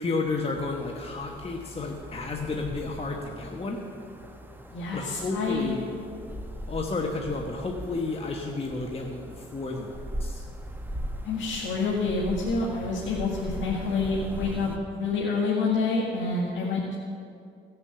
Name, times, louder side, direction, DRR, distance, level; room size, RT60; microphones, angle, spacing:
voice 1, 0.0-3.8 4.9-5.9 6.7-10.4, left 3 dB, 30° left, 1 dB, 1.2 m, -32 dB
sound 1, 0.5-14.8, equal, 10° right, 1.4 m, -40 dB
voice 2, 4.7-5.8 11.2-16.9, left 3 dB, 70° left, -4 dB, 1.8 m, -28 dB
17.0 x 6.9 x 6.9 m, 2.4 s
cardioid pair, 90°, 20 cm